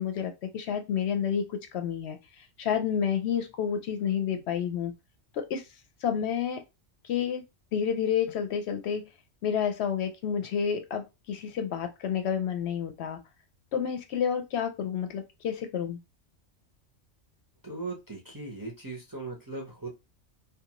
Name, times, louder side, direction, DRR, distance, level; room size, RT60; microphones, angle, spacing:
voice 1, 0.0-4.9 5.3-5.6 6.0-6.6 7.0-7.4 7.7-9.0 9.4-13.2 13.7-16.0, left 8 dB, 70° left, 6 dB, 0.8 m, -30 dB
voice 2, 17.6-19.9, right 3 dB, 25° right, -2 dB, 0.6 m, -38 dB
2.5 x 2.2 x 2.9 m, 0.24 s
omnidirectional pair, 1.2 m